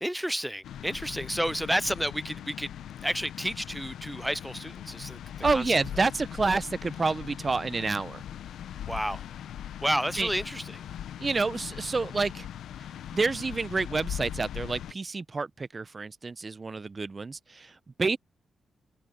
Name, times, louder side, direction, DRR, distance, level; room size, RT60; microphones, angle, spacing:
voice 1, 0.0-2.7 3.0-5.2 5.5-5.8 8.9-9.2 9.8-10.8, equal, 5° right, 0.4 m, -31 dB
sound 1, 0.6-14.9, left 10 dB, 85° left, 0.9 m, -40 dB
voice 2, 5.4-8.2 10.2-10.3 11.2-12.5 13.1-18.2, right 4 dB, 40° right, 0.8 m, -29 dB
supercardioid pair, 50°, 0 cm